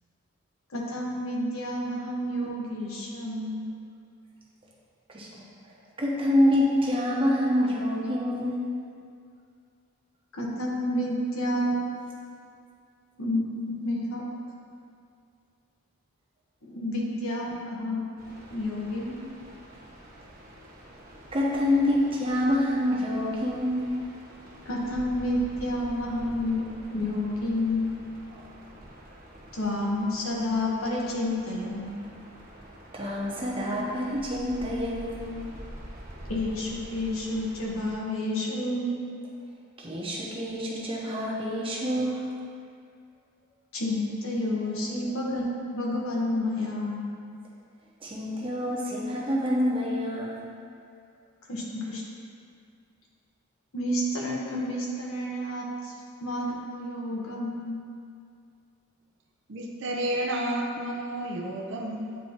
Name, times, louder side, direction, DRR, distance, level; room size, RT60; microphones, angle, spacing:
voice 1, 0.7-3.7 10.3-11.8 13.2-14.2 16.7-18.0 18.5-19.2 24.6-26.6 26.9-27.9 29.5-32.0 36.3-39.0 43.7-47.1 51.5-52.0 53.7-55.9 56.2-57.8, left 1 dB, 75° left, -3 dB, 1.1 m, -30 dB
voice 2, 5.1-8.6 21.3-23.9 28.3-28.4 32.9-35.3 39.8-42.3 45.1-45.2 48.0-50.4, left 1 dB, 25° right, -5 dB, 0.9 m, -27 dB
sound 1, 18.2-38.0, right 1 dB, 40° right, 1.2 m, -46 dB
voice 3, 59.5-62.2, right 1 dB, 55° right, 0 dB, 0.6 m, -31 dB
8.9 x 4.2 x 2.8 m, 2.4 s
head